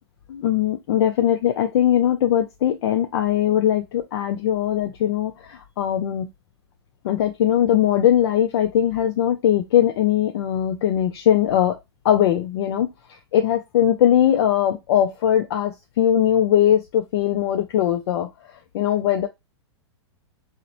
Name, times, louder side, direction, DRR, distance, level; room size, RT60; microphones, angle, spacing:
voice 1, 0.3-6.3 7.0-11.8 12.0-19.3, left 10 dB, 60° left, 0.4 m, -20 dB
2.8 x 2.0 x 2.5 m
hypercardioid pair, 110°, 15 cm